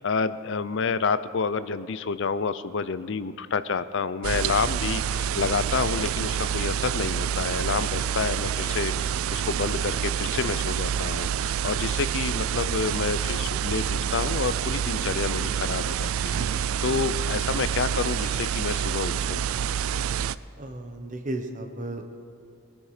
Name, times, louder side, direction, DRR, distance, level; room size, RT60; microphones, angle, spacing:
voice 1, 0.0-19.4, left 5 dB, 55° left, 14 dB, 0.5 m, -29 dB
sound 1, 4.2-20.4, right 8 dB, 70° right, 0.3 m, -27 dB
voice 2, 20.6-22.0, right 1 dB, 35° right, 5 dB, 1.1 m, -34 dB
21.5 x 9.9 x 5.0 m, 2.6 s
head